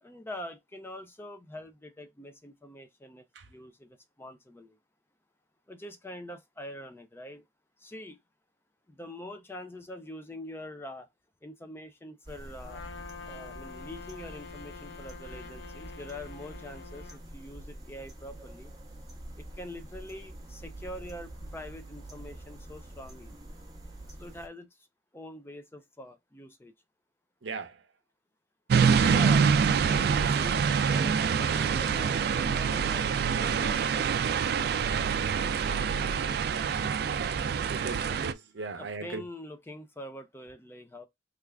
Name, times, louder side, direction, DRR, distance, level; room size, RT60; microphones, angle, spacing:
voice 1, 0.0-4.8 5.7-7.4 7.8-8.2 8.9-11.1 11.4-12.8 13.2-18.7 19.4-23.3 24.2-24.7 25.1-26.7 28.7-29.5 29.8-34.4 35.4-36.7 38.8-41.1, left 1 dB, 15° left, 0.4 m, -44 dB
sound 1, 12.2-24.5, right 1 dB, 20° right, 0.9 m, -46 dB
Trumpet, 12.6-17.2, left 6 dB, 65° left, 0.6 m, -46 dB
voice 2, 27.4-27.8 37.7-39.2, right 3 dB, 75° right, 0.7 m, -38 dB
sound 2, 28.7-38.3, right 6 dB, 55° right, 0.3 m, -26 dB
3.4 x 2.4 x 3.3 m
head